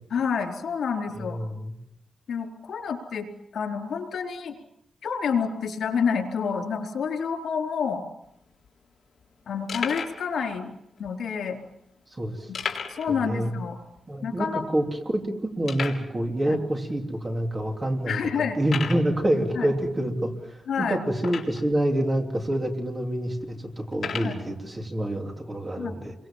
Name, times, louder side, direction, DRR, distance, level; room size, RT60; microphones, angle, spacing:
voice 1, 0.1-1.4 2.3-4.6 5.0-8.0 9.5-10.7 11.0-11.6 12.5-12.6 12.9-13.8 14.2-14.6 16.5-16.6 18.1-18.6 19.5-19.7 20.7-21.0 24.2-24.4 25.8-25.9, left 6 dB, 80° left, 3 dB, 4.4 m, -28 dB
voice 2, 1.2-1.7 12.1-12.5 13.1-13.5 14.1-14.5 14.7-15.2 15.6-26.1, right 1 dB, 20° right, 3 dB, 3.1 m, -27 dB
sound 1, 8.2-8.3 8.5-8.7 9.2-9.3 9.7-10.2 11.0-11.1 12.5-13.1 13.4-13.5 14.0-14.1 14.6-14.7 15.7-16.1 16.9-17.0 17.6-17.7 18.6-19.1 21.2-21.7 22.5-22.6 23.9-24.4, left 6 dB, 55° left, 3.9 m, -33 dB
29.5 x 23.5 x 7.5 m, 0.82 s
wide cardioid pair, 150°, 0 cm